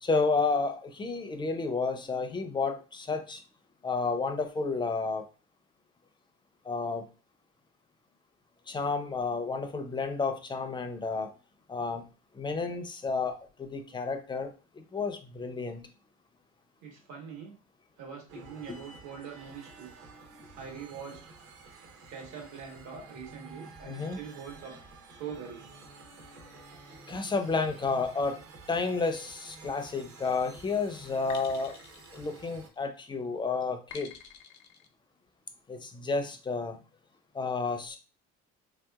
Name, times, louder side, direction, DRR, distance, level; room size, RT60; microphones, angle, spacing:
voice 1, 0.0-3.4 3.8-5.2 6.6-7.1 8.7-11.3 11.7-12.0 12.3-15.8 18.7-18.8 23.8-24.2 26.5-26.6 26.9-28.4 28.7-31.8 32.1-34.1 35.7-36.8 37.3-38.0, left 4 dB, 15° left, 6 dB, 0.4 m, -31 dB
voice 2, 16.8-17.5 18.0-19.9 20.6-21.3 22.1-24.8 25.1-25.6, right 6 dB, 70° right, 0 dB, 1.4 m, -43 dB
sound 1, 18.3-32.7, right 4 dB, 55° right, 0.7 m, -51 dB
sound 2, 29.8-30.2 31.3-33.0 33.9-34.9, left 7 dB, 70° left, 0.6 m, -49 dB
3.2 x 2.8 x 2.3 m, 0.33 s
cardioid pair, 120°, 29 cm